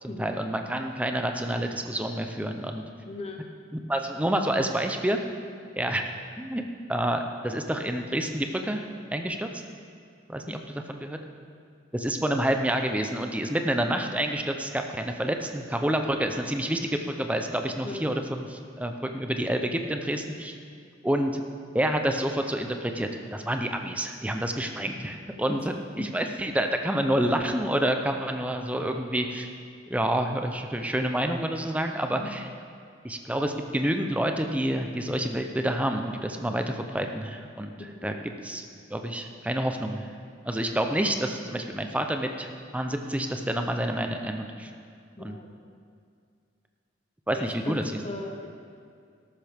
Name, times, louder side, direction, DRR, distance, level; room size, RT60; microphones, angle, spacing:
voice 1, 0.0-2.8 3.9-5.3 5.8-6.1 6.4-6.6 6.9-9.5 10.3-11.2 11.9-20.6 21.0-21.4 21.7-29.5 29.9-32.5 33.0-38.1 38.4-38.7 38.9-40.1 40.5-44.7 45.2-45.4 47.3-47.8, right 1 dB, 5° right, 5 dB, 0.6 m, -28 dB
voice 2, 3.1-3.4 10.5-10.6 17.8-18.0 25.5-25.6 26.0-26.1 32.2-32.3 37.9-38.1 45.2-45.5 47.4-47.7 48.0-48.5, left 2 dB, 30° left, 2 dB, 0.8 m, -37 dB
13.5 x 12.0 x 3.5 m, 2.3 s
head